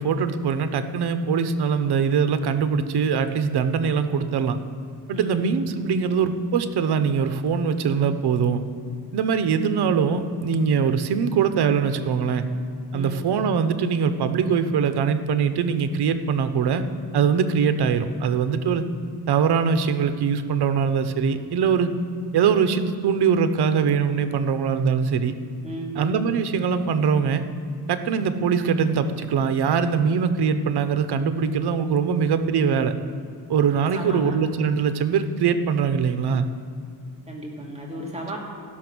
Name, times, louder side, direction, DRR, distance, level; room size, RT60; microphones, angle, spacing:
voice 1, 0.0-4.6 5.1-8.6 9.1-12.4 12.9-16.8 17.1-18.8 19.3-21.9 22.3-25.4 26.0-27.4 27.9-32.9 33.5-36.4, right 6 dB, 70° right, 10 dB, 0.9 m, -22 dB
voice 2, 5.1-5.4 12.9-13.3 25.6-26.0 33.9-34.4 37.3-38.4, right 1 dB, 15° right, -3 dB, 1.9 m, -34 dB
15.0 x 6.0 x 6.1 m, 2.4 s
cardioid pair, 120°, 40 cm